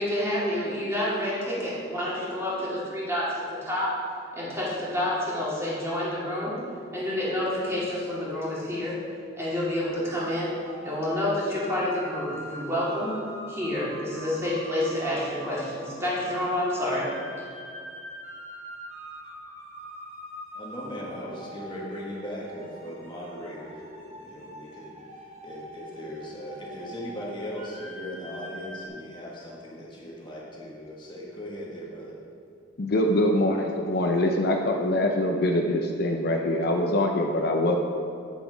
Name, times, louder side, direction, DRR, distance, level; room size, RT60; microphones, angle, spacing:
voice 1, 0.0-3.9 4.3-6.6 6.9-9.0 9.3-10.6 10.8-13.2 13.5-17.1 17.4-17.5, left 1 dB, 15° right, -8 dB, 2.3 m, -28 dB
sound 1, 10.2-28.9, equal, 35° right, 1.0 m, -43 dB
voice 2, 20.5-32.2, equal, 25° left, -4 dB, 1.4 m, -38 dB
voice 3, 32.8-37.8, left 1 dB, 55° left, 2 dB, 0.6 m, -24 dB
8.4 x 6.9 x 5.1 m, 2.3 s
head